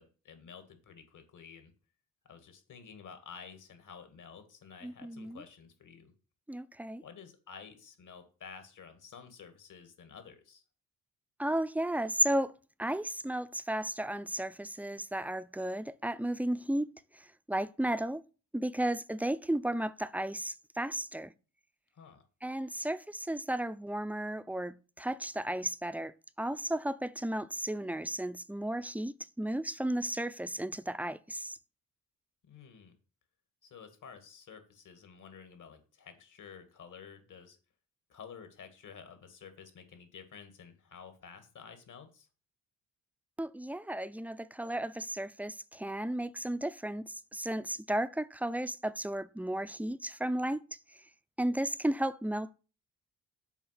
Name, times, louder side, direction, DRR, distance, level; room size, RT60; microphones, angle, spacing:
voice 1, 0.0-1.7 2.3-6.1 7.0-10.6 21.9-22.3 32.4-33.0 33.6-37.6 38.1-42.3, left 6 dB, 60° left, 2.1 m, -51 dB
voice 2, 4.8-5.4 6.5-7.0 11.4-12.5 12.8-16.9 17.1-18.2 18.5-21.3 22.4-31.6 43.4-50.6 51.4-52.5, right 1 dB, 5° right, 0.5 m, -34 dB
7.2 x 4.7 x 5.9 m
supercardioid pair, 55°, 35 cm